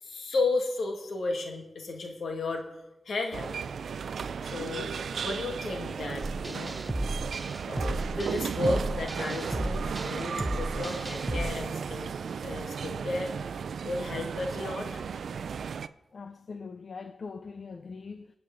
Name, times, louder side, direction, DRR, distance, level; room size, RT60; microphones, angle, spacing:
voice 1, 0.0-2.7 3.1-3.5 4.4-4.9 5.2-6.8 7.6-12.2 12.4-13.3 13.8-15.0, left 3 dB, 85° left, 2.0 m, -33 dB
sound 1, 3.3-15.9, right 6 dB, 90° right, 0.4 m, -35 dB
sound 2, 6.2-11.5, right 1 dB, 20° right, 0.7 m, -34 dB
voice 2, 16.1-18.4, left 4 dB, 70° left, 0.5 m, -42 dB
23.0 x 8.8 x 3.8 m
cardioid pair, 65°, 0 cm